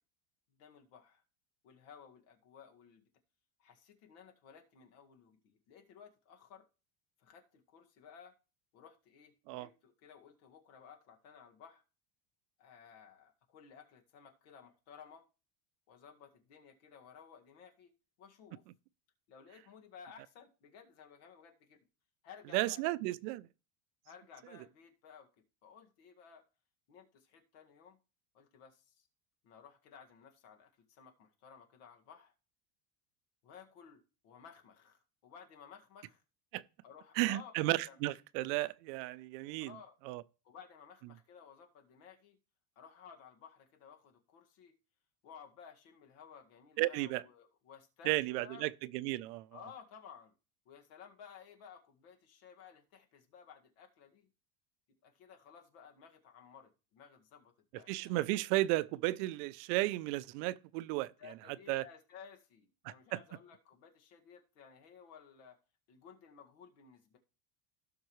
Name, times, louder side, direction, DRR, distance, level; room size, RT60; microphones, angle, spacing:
voice 1, 0.5-1.2 1.6-3.1 3.6-6.7 7.2-8.3 8.7-11.8 12.6-15.3 15.9-17.9 18.2-18.6 19.3-21.8 22.2-22.8 24.0-25.3 25.6-26.4 26.9-28.0 28.3-29.1 29.4-32.3 33.4-36.2 36.8-37.5 37.9-38.0 39.7-40.0 40.4-42.4 42.8-44.7 45.2-48.7 49.5-50.3 50.7-54.3 55.0-58.2 61.2-65.6 65.9-67.2, left 7 dB, 70° left, 2.0 m, -56 dB
voice 2, 22.5-23.5 36.5-36.6 37.2-39.7 40.1-40.2 46.8-47.2 48.0-49.5 57.9-61.1 61.7-61.8 62.8-63.2, right 18 dB, 75° right, 0.7 m, -34 dB
16.5 x 6.0 x 3.1 m
cardioid pair, 145°, 47 cm